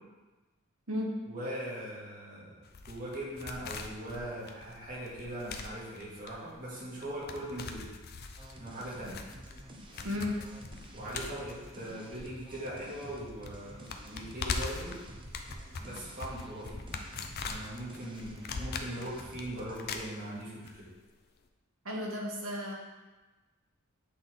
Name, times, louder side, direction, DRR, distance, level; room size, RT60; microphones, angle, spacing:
voice 1, 1.2-2.6 2.9-7.9 8.6-9.2 10.9-15.0 15.8-16.8 17.4-20.9, right 1 dB, 40° right, -7 dB, 2.1 m, -40 dB
sound 1, 2.7-12.8 13.0-13.1 13.4-20.7 21.0-21.1, left 4 dB, 50° left, 0.5 m, -41 dB
sound 2, 8.4-19.8, right 1 dB, 25° right, 0.6 m, -50 dB
voice 2, 10.0-10.4 21.8-22.7, left 1 dB, 70° right, -2 dB, 1.4 m, -33 dB
8.3 x 3.8 x 3.8 m, 1.2 s
head